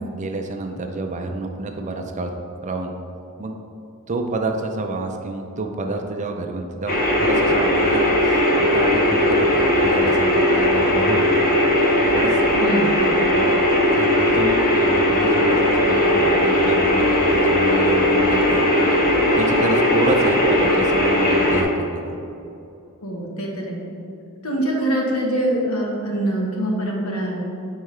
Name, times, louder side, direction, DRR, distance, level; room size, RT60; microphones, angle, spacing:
voice 1, 0.1-2.3 2.6-2.9 3.4-3.6 4.1-11.3 12.1-12.4 13.3-13.6 13.9-18.6 19.4-22.1, right 2 dB, 35° right, 4 dB, 0.5 m, -28 dB
sound 1, 6.9-21.6, left 1 dB, 40° left, 0.9 m, -18 dB
voice 2, 12.5-12.9 23.0-23.8 24.4-27.4, right 1 dB, 70° left, -1 dB, 1.3 m, -24 dB
9.2 x 4.6 x 3.3 m, 2.7 s
head